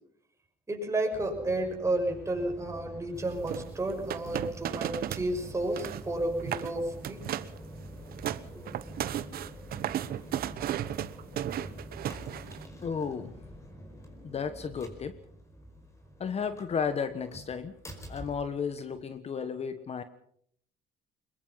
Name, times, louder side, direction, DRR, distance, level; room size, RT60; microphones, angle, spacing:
voice 1, 0.7-7.3, right 1 dB, 15° right, 2 dB, 6.1 m, -31 dB
sound 1, 1.1-19.2, equal, 15° left, 5.1 m, -46 dB
sound 2, 3.4-5.3 5.6-6.1 6.4-6.7 7.0-7.6 7.9-12.6, right 12 dB, 65° right, 1.1 m, -34 dB
voice 2, 12.8-13.4 14.2-15.2 16.2-17.7 18.1-20.0, left 6 dB, 40° left, 11 dB, 1.3 m, -33 dB
22.5 x 21.5 x 5.7 m, 0.66 s
cardioid pair, 110°, 17 cm